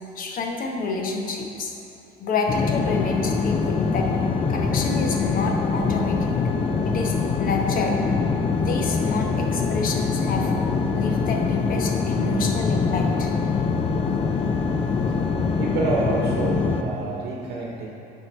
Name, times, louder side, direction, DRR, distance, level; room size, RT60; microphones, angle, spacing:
voice 1, 0.2-1.7 2.2-4.1 4.5-6.2 6.8-8.0 8.5-10.5 10.9-13.3, left 4 dB, 55° left, 2 dB, 0.9 m, -28 dB
sound 1, 2.5-16.8, left 4 dB, 35° left, 0.5 m, -24 dB
voice 2, 15.6-17.9, right 3 dB, 75° right, -2 dB, 1.0 m, -27 dB
7.7 x 4.5 x 4.4 m, 2.9 s
cardioid pair, 110°, 17 cm